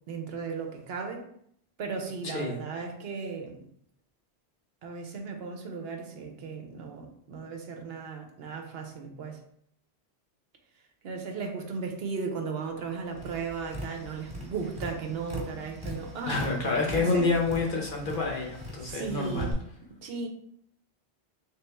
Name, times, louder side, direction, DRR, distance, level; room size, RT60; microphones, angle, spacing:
voice 1, 0.1-1.2 1.8-3.6 4.8-9.4 11.0-17.3 18.9-19.6 20.0-20.3, right 5 dB, 70° right, 3 dB, 0.9 m, -36 dB
voice 2, 2.2-2.6 16.3-19.5, left 3 dB, 55° left, 0 dB, 0.9 m, -28 dB
Tap, 13.1-19.5, equal, 30° right, 1.2 m, -40 dB
3.4 x 3.0 x 3.3 m, 0.68 s
omnidirectional pair, 1.1 m